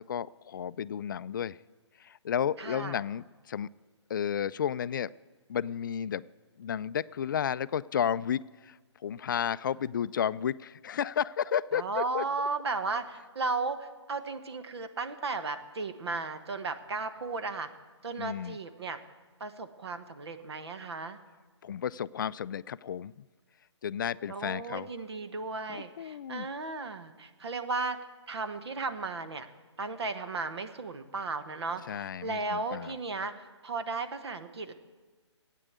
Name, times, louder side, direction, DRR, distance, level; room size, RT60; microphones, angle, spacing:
voice 1, 0.0-1.6 2.0-3.7 4.1-5.1 5.5-6.2 6.6-8.8 9.0-12.2 18.2-18.6 21.6-23.2 23.8-24.9 25.7-26.5 31.9-33.0, left 8 dB, 45° left, 18 dB, 0.3 m, -32 dB
voice 2, 2.6-3.0 11.7-17.7 18.0-19.0 19.4-21.2 24.3-28.0 28.3-29.5 29.8-34.7, right 3 dB, 60° right, 9 dB, 1.3 m, -35 dB
15.0 x 9.2 x 8.2 m, 1.4 s
figure-of-eight pair, 140°, 15 cm